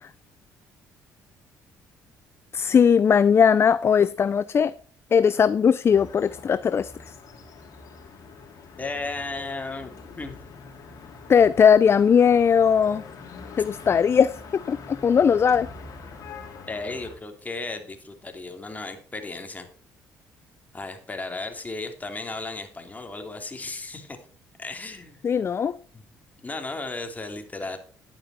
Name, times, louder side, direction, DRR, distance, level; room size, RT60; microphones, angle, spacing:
voice 1, 2.5-4.7 5.1-6.9 11.3-13.0 13.6-14.3 14.7-15.7 25.2-25.8, left 7 dB, 40° left, 0.4 m, -19 dB
sound 1, 5.9-17.1, left 4 dB, 60° left, 3.2 m, -44 dB
voice 2, 8.8-10.4 16.7-19.7 20.7-24.2 24.6-25.2 25.9-26.0 26.4-27.8, left 3 dB, 25° left, 2.8 m, -35 dB
11.0 x 9.0 x 4.3 m
supercardioid pair, 75°, 7 cm